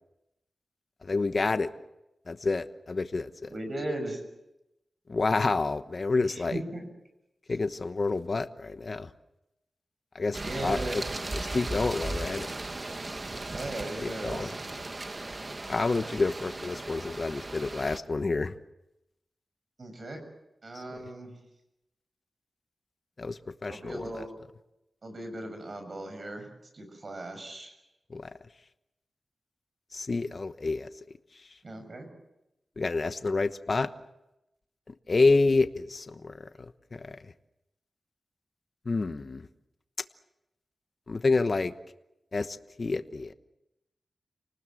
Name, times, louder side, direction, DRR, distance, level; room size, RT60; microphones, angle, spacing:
voice 1, 1.0-1.7 2.3-3.5 5.1-6.6 7.5-9.1 10.1-11.0 11.3-12.5 14.0-14.5 15.7-18.6 20.7-21.0 23.2-24.3 28.1-28.3 29.9-30.9 32.8-33.9 34.9-37.2 38.8-39.5 41.1-41.7 42.3-43.3, left 3 dB, 50° left, 10 dB, 1.1 m, -29 dB
voice 2, 3.5-4.2 6.3-6.9 10.4-11.0 13.5-14.7 19.8-20.2 20.6-21.3 23.7-24.3 25.0-26.5 26.7-27.7 31.6-32.1, right 1 dB, 55° right, 6 dB, 6.7 m, -37 dB
sound 1, 10.3-18.0, right 2 dB, 35° right, 1.6 m, -37 dB
29.5 x 19.5 x 7.8 m, 0.89 s
cardioid pair, 65°, 0 cm